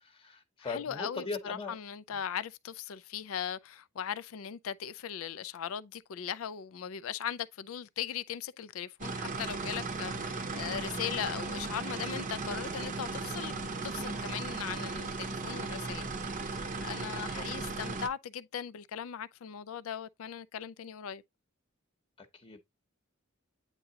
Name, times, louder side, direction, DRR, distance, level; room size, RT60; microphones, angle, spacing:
voice 1, 0.0-1.7 17.0-17.4 22.2-22.6, left 3 dB, 25° left, 0.9 m, -40 dB
voice 2, 0.6-16.0 16.8-21.2, left 8 dB, 75° left, 0.4 m, -39 dB
sound 1, 9.0-18.1, right 3 dB, 35° right, 0.6 m, -36 dB
9.0 x 3.7 x 2.8 m
head